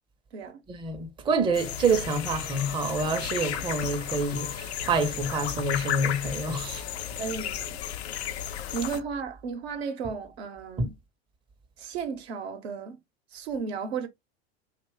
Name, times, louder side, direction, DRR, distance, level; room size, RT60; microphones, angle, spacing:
voice 1, 0.7-6.8 10.8-10.9, right 3 dB, 15° right, 0.5 m, -27 dB
sound 1, 1.5-9.0, left 10 dB, 80° left, 0.5 m, -34 dB
voice 2, 7.2-7.8 8.7-10.9 11.8-13.0 13.3-14.1, right 5 dB, 75° right, 0.8 m, -34 dB
2.6 x 2.2 x 2.9 m
hypercardioid pair, 90°, 32 cm